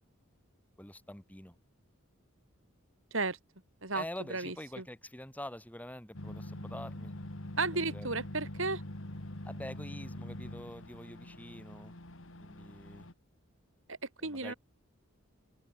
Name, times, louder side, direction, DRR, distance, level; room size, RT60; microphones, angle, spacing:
voice 1, 0.8-1.6 3.9-7.1 7.7-8.1 9.4-11.9 12.4-13.1 14.2-14.5, left 1 dB, 5° left, 3.3 m, -46 dB
voice 2, 4.3-4.8 7.6-8.8 13.9-14.5, right 3 dB, 70° right, 5.4 m, -34 dB
sound 1, 6.1-13.1, left 1 dB, 65° left, 2.6 m, -44 dB
head